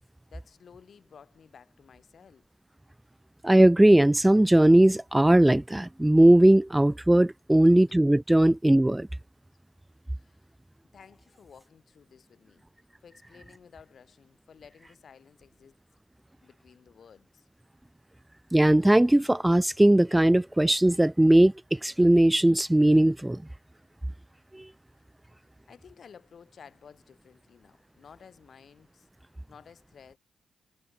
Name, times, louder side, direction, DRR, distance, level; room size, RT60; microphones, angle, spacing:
voice 1, 0.3-2.5 7.6-7.8 10.1-10.5 10.9-12.6 13.0-15.8 16.4-17.5 25.4-29.1 29.5-30.2, left 7 dB, 60° left, 7.0 m, -54 dB
voice 2, 3.4-9.1 18.5-23.4 24.5-24.6, right 1 dB, 10° right, 0.4 m, -19 dB
supercardioid pair, 45°, 0 cm